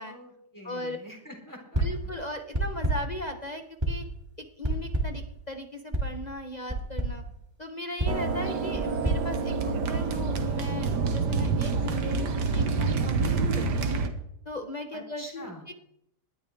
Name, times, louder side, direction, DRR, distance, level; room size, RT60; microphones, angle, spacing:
voice 1, 0.0-1.8 14.9-15.7, equal, 10° left, 0 dB, 3.7 m, -45 dB
voice 2, 0.6-1.0 1.8-4.1 4.4-7.2 7.6-14.0 14.4-15.7, left 1 dB, 30° left, 5 dB, 0.9 m, -38 dB
sound 1, 1.7-2.1 2.5-3.2 3.8-4.2 4.6-5.3 5.9-6.2 6.7-7.2 8.0-10.1, right 2 dB, 15° right, 2.0 m, -30 dB
sound 2, 8.1-14.1, right 4 dB, 80° right, 1.8 m, -27 dB
19.0 x 12.5 x 3.5 m, 0.76 s
omnidirectional pair, 1.8 m